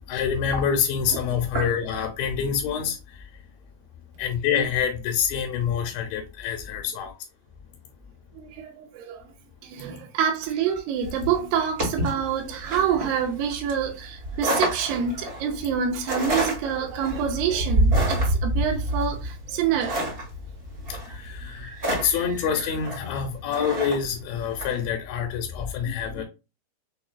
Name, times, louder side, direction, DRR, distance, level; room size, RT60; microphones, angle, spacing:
voice 1, 0.1-3.0 4.2-7.1 21.2-26.2, left 7 dB, 80° left, 2.2 m, -26 dB
voice 2, 8.4-9.2 9.6-20.1 25.8-26.2, right 8 dB, 80° right, 2.2 m, -27 dB
sound 1, 11.0-24.8, right 1 dB, 30° right, 1.1 m, -28 dB
5.9 x 2.3 x 2.2 m
omnidirectional pair, 4.5 m